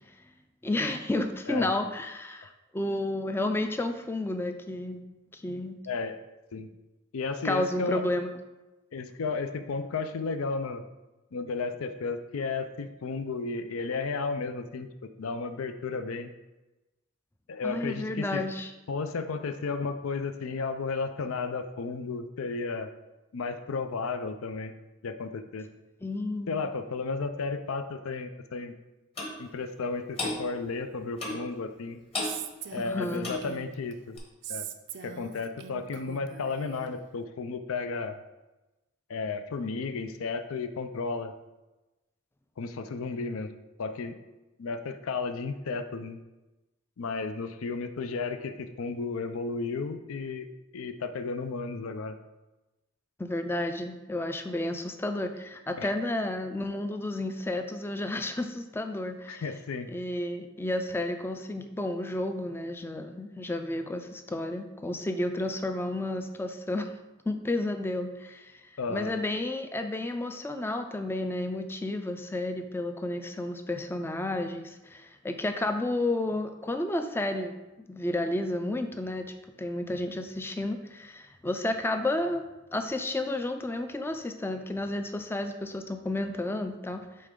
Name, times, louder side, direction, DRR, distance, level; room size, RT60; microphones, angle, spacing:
voice 1, 0.6-5.0 5.3-5.8 7.4-8.3 17.6-18.7 26.0-26.6 32.8-33.4 53.2-59.4 59.9-66.9 67.3-68.6 68.9-82.4 82.7-87.3, left 1 dB, 10° left, 7 dB, 0.3 m, -31 dB
voice 2, 5.9-6.2 6.5-6.7 7.1-8.0 8.9-10.8 11.3-16.3 17.5-18.4 18.9-22.9 23.3-24.7 25.0-25.7 26.5-28.7 29.4-32.0 32.7-34.2 34.5-34.7 35.0-38.2 39.1-41.3 42.6-43.5 43.8-44.2 44.6-46.2 47.0-50.5 50.7-52.2 55.8-55.9 59.3-59.9 68.8-69.2, left 4 dB, 85° left, 10 dB, 0.5 m, -33 dB
Clock, 29.2-29.4 30.2-30.4 31.2-31.5 32.1-32.4 33.2-33.5 34.2-34.3, left 2 dB, 30° left, 1.2 m, -32 dB
Female speech woman speaking, 32.2-33.9 34.4-36.9, right 9 dB, 60° right, 0.4 m, -41 dB
8.4 x 3.3 x 3.7 m, 1.1 s
head